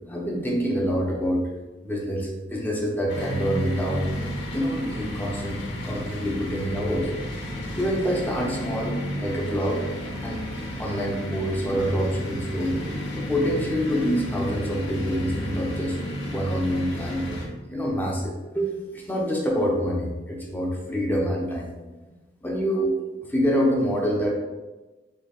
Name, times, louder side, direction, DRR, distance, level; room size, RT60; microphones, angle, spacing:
voice 1, 0.1-1.5 1.8-7.1 7.8-9.8 10.2-10.4 10.8-12.8 13.1-22.0 22.4-23.0 23.3-24.3, equal, 10° left, -2 dB, 0.6 m, -26 dB
sound 1, 3.1-17.5, equal, 85° left, 0.9 m, -33 dB
6.0 x 2.2 x 2.4 m, 1.2 s
head